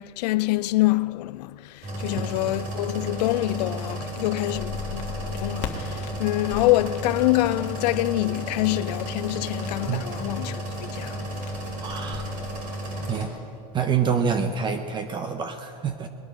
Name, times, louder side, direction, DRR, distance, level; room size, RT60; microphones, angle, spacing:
voice 1, 0.0-11.2, left 18 dB, 80° left, 0.4 m, -26 dB
sound 1, 1.8-13.3, right 1 dB, 40° right, 4.6 m, -33 dB
voice 2, 2.1-2.5 9.9-10.0 11.8-12.3 13.1-13.3 13.7-16.1, right 6 dB, 25° right, 0.7 m, -27 dB
sound 2, 4.5-12.6, left 8 dB, 40° left, 1.5 m, -40 dB
21.0 x 8.9 x 6.3 m
supercardioid pair, 145°, 20 cm